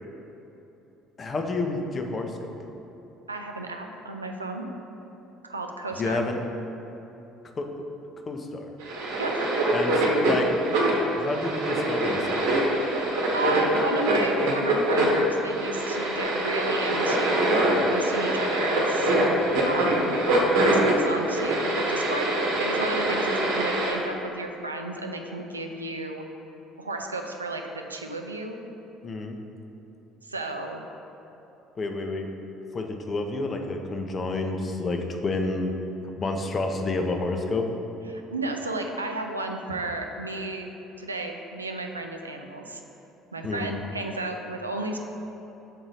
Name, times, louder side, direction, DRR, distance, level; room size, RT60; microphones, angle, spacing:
voice 1, 1.2-2.5 6.0-6.4 7.6-7.9 8.3-8.7 9.7-9.9 10.2-10.5 11.2-12.4 29.0-29.4 31.8-32.3 32.7-35.7 36.2-37.7 43.4-43.7, left 3 dB, 35° left, 4 dB, 0.6 m, -29 dB
voice 2, 3.3-4.7 5.4-6.2 9.2-9.3 13.3-19.1 19.6-20.2 20.5-26.3 26.8-28.6 30.2-30.8 38.1-40.7 41.0-42.8 43.3-45.0, right 2 dB, 85° right, 3 dB, 0.4 m, -33 dB
sound 1, 8.8-23.9, right 1 dB, 65° right, 1.0 m, -24 dB
6.2 x 3.9 x 4.0 m, 3.0 s
figure-of-eight pair, 55°, 0 cm